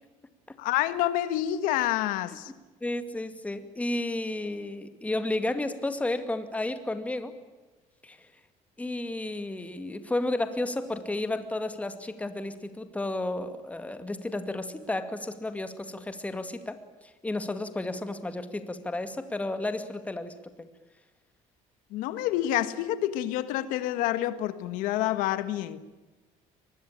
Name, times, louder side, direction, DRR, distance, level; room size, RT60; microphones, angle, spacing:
voice 1, 0.6-2.5 21.9-25.8, left 13 dB, 90° left, 13 dB, 1.6 m, -28 dB
voice 2, 2.8-7.3 8.0-8.3 8.8-20.7, left 2 dB, 10° left, 9 dB, 2.2 m, -32 dB
24.5 x 21.0 x 8.8 m, 1.2 s
cardioid pair, 135°, 14 cm